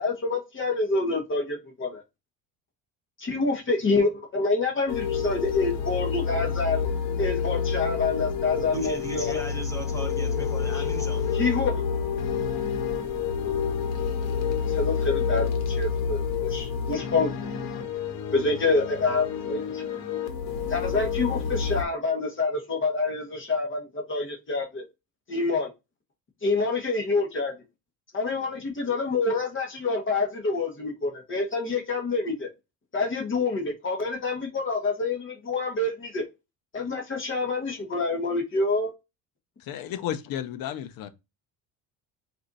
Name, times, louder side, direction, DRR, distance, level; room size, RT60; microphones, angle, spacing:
voice 1, 0.0-2.0 3.2-6.8 7.2-9.4 10.7-10.8 11.3-11.8 14.7-17.3 18.3-19.8 20.7-24.8 25.3-25.7 26.4-27.5 28.1-32.5 32.9-36.2 36.7-38.9, left 3 dB, 35° left, 1.3 m, -27 dB
sound 1, 4.9-21.8, left 6 dB, 80° left, 1.1 m, -28 dB
voice 2, 8.7-11.4, right 1 dB, 10° left, 1.1 m, -37 dB
voice 3, 39.6-41.1, left 10 dB, 65° left, 0.8 m, -33 dB
4.2 x 2.7 x 4.0 m
cardioid pair, 125°, 37 cm